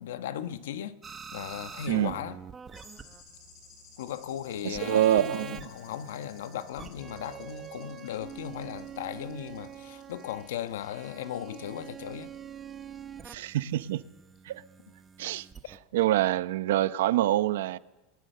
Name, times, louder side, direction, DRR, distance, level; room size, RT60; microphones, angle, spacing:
voice 1, 0.0-2.4 4.0-12.3, left 10 dB, 90° left, 1.3 m, -37 dB
sound 1, 1.0-3.5 4.7-15.8, right 8 dB, 20° right, 1.0 m, -45 dB
sound 2, 2.7-12.4 12.7-13.0 14.4-14.5, left 5 dB, 40° left, 6.2 m, -58 dB
voice 2, 4.6-5.6 13.2-14.0 14.4-14.6 15.2-15.5 15.9-17.8, right 13 dB, 80° right, 0.9 m, -26 dB
27.5 x 19.5 x 6.7 m
supercardioid pair, 155°, 0 cm